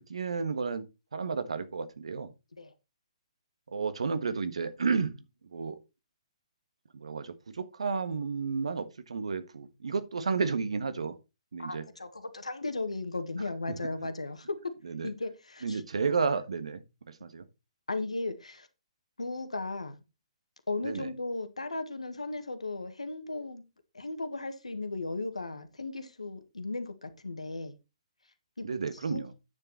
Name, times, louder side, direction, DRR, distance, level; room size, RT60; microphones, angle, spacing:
voice 1, 0.0-2.3 3.7-5.1 5.5-5.8 6.9-11.2 11.5-11.8 14.8-15.1 15.6-16.8 17.2-17.4 20.8-21.1 28.6-29.3, right 5 dB, 70° right, 1.4 m, -32 dB
voice 2, 11.6-14.6 15.0-15.8 16.1-16.2 17.9-18.7 19.2-20.0 20.7-23.6 23.9-27.8 28.6-28.7 28.9-29.2, left 2 dB, 85° left, 1.8 m, -36 dB
9.5 x 7.1 x 4.2 m
figure-of-eight pair, 130°, 3 cm